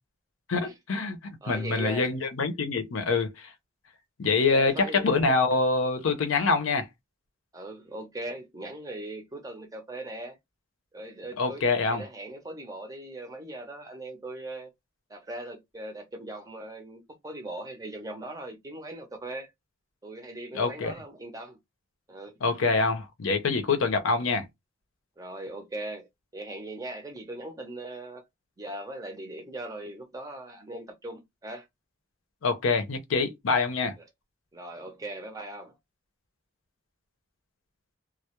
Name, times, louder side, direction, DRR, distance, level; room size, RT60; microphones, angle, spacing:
voice 1, 0.5-1.2 1.5-3.5 4.2-6.9 11.4-12.0 20.5-20.9 22.4-24.5 32.4-33.9, left 4 dB, 85° left, 0.6 m, -25 dB
voice 2, 1.4-2.2 4.5-5.3 7.5-10.4 10.9-11.6 11.9-14.7 15.1-19.5 20.0-21.6 22.1-22.4 25.2-28.2 28.6-31.7 34.0-34.1 34.5-35.8, right 1 dB, 15° right, 0.5 m, -39 dB
2.2 x 2.0 x 2.9 m
head